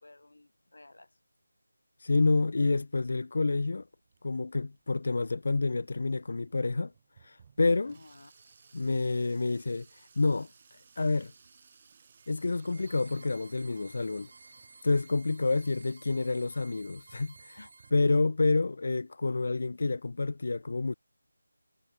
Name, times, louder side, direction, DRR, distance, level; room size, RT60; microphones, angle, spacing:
voice 1, 0.0-1.2 7.9-8.3 15.3-15.4 17.6-17.9, left 2 dB, 80° left, 2.9 m, -54 dB
voice 2, 2.0-3.9 4.2-6.9 7.2-8.0 8.7-9.9 10.2-10.5 11.0-11.3 12.3-14.3 14.8-17.6 17.9-21.0, left 3 dB, 45° left, 0.3 m, -28 dB
Water tap faucet / Sink (filling or washing), 3.3-19.2, right 6 dB, 20° right, 2.2 m, -62 dB
sound 1, 8.1-16.7, right 2 dB, 80° right, 5.9 m, -65 dB
sound 2, 12.2-17.9, right 3 dB, 40° right, 1.2 m, -55 dB
figure-of-eight pair, 175°, 0 cm